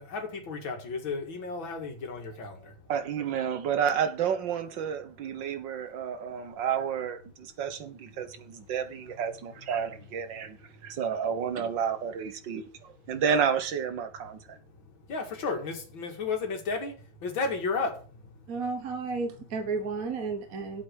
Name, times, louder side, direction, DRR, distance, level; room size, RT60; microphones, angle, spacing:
voice 1, 0.0-2.9 5.1-5.3 5.9-6.2 6.5-6.6 7.5-11.6 12.5-13.2 14.1-18.7 19.1-19.6 20.3-20.4 20.6-20.8, left 4 dB, 75° left, 2.9 m, -37 dB
voice 2, 2.9-10.6 10.8-14.6, right 7 dB, 70° right, 1.9 m, -30 dB
voice 3, 18.5-20.8, right 4 dB, 50° right, 1.4 m, -32 dB
8.3 x 8.0 x 6.3 m
omnidirectional pair, 2.1 m